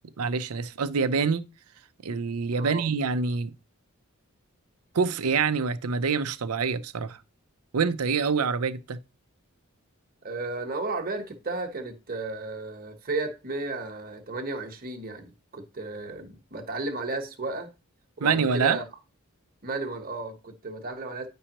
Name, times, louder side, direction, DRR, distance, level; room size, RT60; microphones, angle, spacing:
voice 1, 0.2-1.5 2.0-3.5 4.9-7.2 7.7-9.0 18.2-18.8, right 5 dB, 85° right, 0.6 m, -26 dB
voice 2, 10.2-17.7 18.2-18.8 19.6-21.3, right 3 dB, 40° right, 1.1 m, -33 dB
10.0 x 5.5 x 3.0 m
head